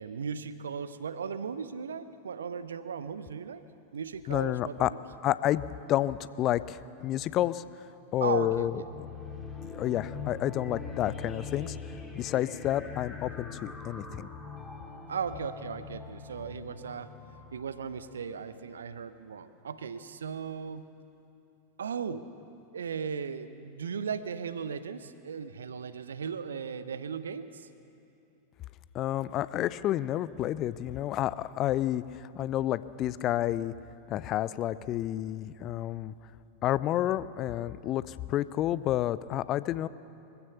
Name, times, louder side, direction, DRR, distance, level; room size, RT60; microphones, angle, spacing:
voice 1, 0.0-3.6 3.9-5.0 8.2-8.7 15.1-17.1 17.5-20.8 21.8-22.3 22.7-27.7, right 6 dB, 70° right, 13 dB, 0.9 m, -37 dB
voice 2, 4.3-4.9 5.2-7.6 8.1-8.8 9.7-11.8 12.1-14.3 28.9-33.7 34.1-36.1 36.6-39.9, left 13 dB, 35° left, 17 dB, 0.5 m, -30 dB
sound 1, 8.5-18.7, left 4 dB, 10° left, 3.0 m, -43 dB
23.5 x 16.0 x 7.0 m, 2.8 s
figure-of-eight pair, 90°, 0 cm